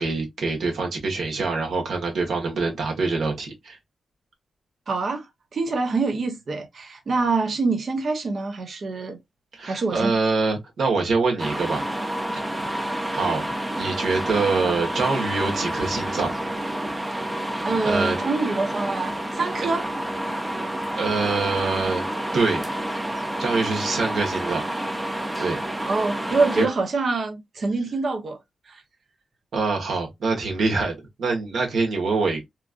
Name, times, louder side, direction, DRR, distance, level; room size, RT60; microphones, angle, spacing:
voice 1, 0.0-3.8 9.5-11.8 12.3-12.4 13.1-16.3 17.8-18.2 21.0-22.1 22.3-22.6 23.4-24.6 25.4-25.6 26.5-26.7 29.5-32.5, right 4 dB, 75° right, 1.2 m, -25 dB
voice 2, 4.9-5.3 5.5-9.2 9.6-10.1 17.6-19.9 25.8-28.4 28.7-28.8, right 3 dB, 60° right, 0.7 m, -25 dB
sound 1, 11.4-26.7, right 1 dB, 15° right, 0.6 m, -29 dB
3.1 x 2.4 x 2.4 m
cardioid pair, 60°, 0 cm